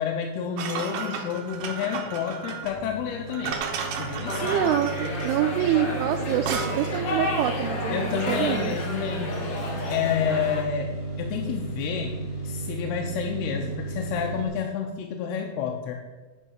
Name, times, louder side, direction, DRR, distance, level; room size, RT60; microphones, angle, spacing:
voice 1, 0.0-3.6 3.9-4.5 7.9-10.9 11.2-12.2 12.4-16.0, left 8 dB, 85° left, 2 dB, 2.7 m, -30 dB
sound 1, 0.6-7.1, right 6 dB, 70° right, 2.2 m, -34 dB
sound 2, 2.6-14.5, right 3 dB, 35° left, 2.5 m, -34 dB
sound 3, 4.2-10.6, left 2 dB, 65° left, 1.1 m, -32 dB
voice 2, 4.4-8.7, right 11 dB, 90° right, 4 dB, 2.6 m, -26 dB
9.9 x 5.6 x 5.8 m, 1.3 s
omnidirectional pair, 4.5 m